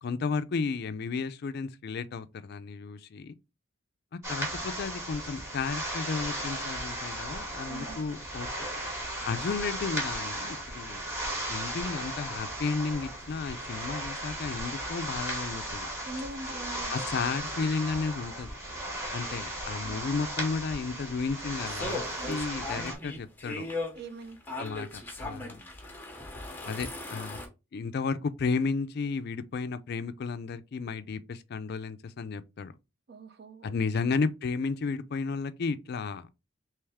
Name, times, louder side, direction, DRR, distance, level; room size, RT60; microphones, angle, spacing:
voice 1, 0.0-3.3 4.1-8.7 9.2-11.0 11.5-15.9 16.9-18.6 19.1-23.7 24.6-25.6 26.6-27.4 27.7-32.7 33.6-36.3, left 4 dB, 50° left, 0.4 m, -33 dB
sound 1, 4.2-23.0, right 1 dB, 15° right, 1.1 m, -36 dB
voice 2, 7.7-8.0 9.5-9.6 16.1-16.9 19.8-20.0 22.2-22.4 24.0-24.4 33.1-33.7 34.0-34.2, right 2 dB, 50° right, 0.5 m, -43 dB
sound 2, 21.5-27.5, left 2 dB, 10° left, 0.8 m, -38 dB
3.4 x 3.0 x 3.4 m
head